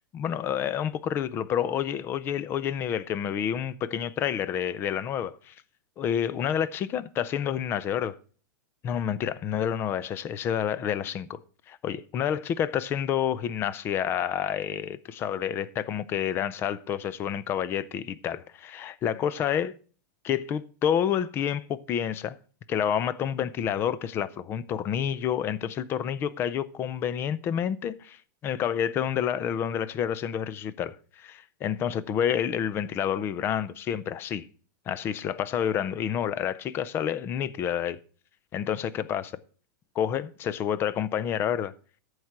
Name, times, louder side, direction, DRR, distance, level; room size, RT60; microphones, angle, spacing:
voice 1, 0.1-5.5 6.0-8.2 8.8-11.4 11.7-19.7 20.2-22.4 22.7-34.5 34.9-38.0 38.5-39.3 40.0-41.7, left 9 dB, 20° left, 0.4 m, -29 dB
14.0 x 4.7 x 5.7 m
supercardioid pair, 160°, 11 cm